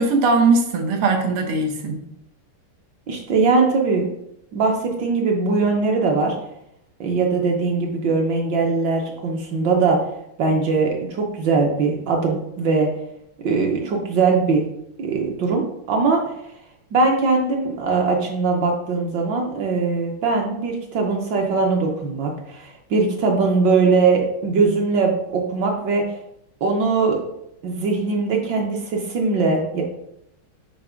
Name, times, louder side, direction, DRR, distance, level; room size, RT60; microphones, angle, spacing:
voice 1, 0.0-2.0, right 3 dB, 90° right, 3 dB, 1.9 m, -19 dB
voice 2, 3.1-4.1 4.5-6.3 7.0-10.0 10.4-12.9 13.4-14.6 15.0-16.2 16.9-26.1 26.6-27.2 27.6-29.8, right 4 dB, 65° right, 0 dB, 1.3 m, -21 dB
7.2 x 2.9 x 4.9 m, 0.78 s
omnidirectional pair, 2.4 m